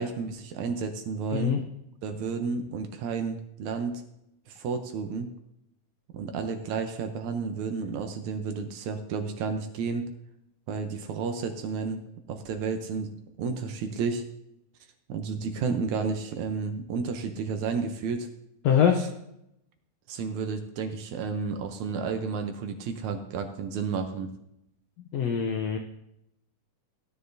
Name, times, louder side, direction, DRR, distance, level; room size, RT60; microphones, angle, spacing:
voice 1, 0.0-1.6 2.0-3.9 4.5-5.3 6.1-10.0 10.7-12.0 12.3-13.1 13.4-14.2 15.1-18.3 20.1-24.3, right 5 dB, 70° right, 6 dB, 2.0 m, -31 dB
voice 2, 18.6-19.1 25.1-25.8, left 8 dB, 80° left, 4 dB, 1.5 m, -23 dB
16.5 x 9.9 x 2.7 m, 0.81 s
omnidirectional pair, 3.8 m